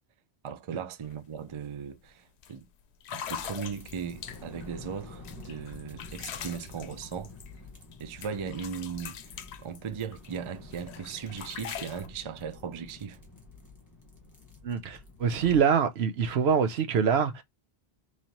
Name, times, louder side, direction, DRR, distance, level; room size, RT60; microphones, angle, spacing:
voice 1, 0.4-2.7 3.1-7.3 8.0-9.2 9.6-13.2, right 7 dB, 40° right, 0.4 m, -38 dB
sound 1, 1.0-1.1 1.5-1.8 2.4-2.5 3.0-4.7 5.2-7.9 8.2-10.3 10.7-12.1, left 9 dB, 80° left, 0.9 m, -42 dB
sound 2, 3.1-15.6, left 3 dB, 15° left, 1.4 m, -48 dB
voice 2, 14.6-17.4, right 6 dB, 75° right, 0.9 m, -25 dB
4.1 x 3.1 x 2.9 m
omnidirectional pair, 1.1 m